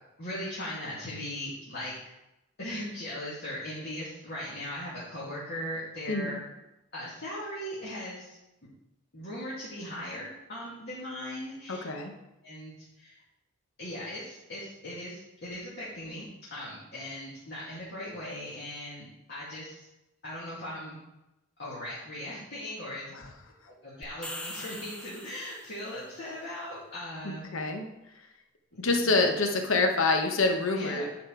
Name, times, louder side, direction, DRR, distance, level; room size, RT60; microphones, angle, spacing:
voice 1, 0.2-1.9 2.6-6.4 6.9-8.4 9.1-11.9 12.4-13.1 13.8-19.9 20.2-21.0 21.6-23.1 23.8-27.5 28.9-29.0 30.8-31.0, left 1 dB, 55° left, -9 dB, 2.1 m, -39 dB
voice 2, 11.7-12.1 23.1-23.3 27.2-27.9 28.8-31.0, left 3 dB, 70° left, 4 dB, 1.0 m, -26 dB
sound 1, 24.0-26.0, left 1 dB, 5° left, 0.5 m, -42 dB
9.9 x 4.4 x 4.5 m, 0.92 s
head